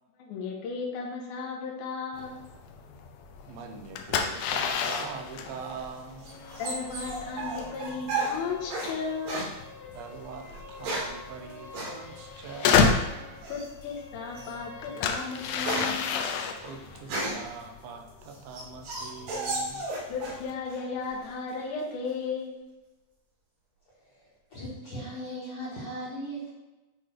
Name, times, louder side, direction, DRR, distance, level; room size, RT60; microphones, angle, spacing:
voice 1, 0.2-2.4 6.6-9.5 13.5-16.2 20.1-22.5, left 5 dB, 70° left, 0 dB, 2.3 m, -35 dB
sound 1, 2.1-20.5, left 6 dB, 85° left, 1.8 m, -32 dB
voice 2, 3.5-6.3 9.9-13.0 16.6-19.9, right 5 dB, 90° right, 4 dB, 2.5 m, -42 dB
sound 2, 5.7-9.0 9.3-9.5 10.5-11.2 11.7-12.0 13.4-13.8 14.4-14.5 14.9-17.5 18.1-20.4 20.7-21.3, right 2 dB, 70° right, 3.1 m, -34 dB
sound 3, 6.0-15.9, left 3 dB, 30° left, 1.5 m, -48 dB
voice 3, 24.5-26.5, equal, 50° left, -9 dB, 2.0 m, -37 dB
8.4 x 3.3 x 4.4 m, 1.1 s
omnidirectional pair, 4.1 m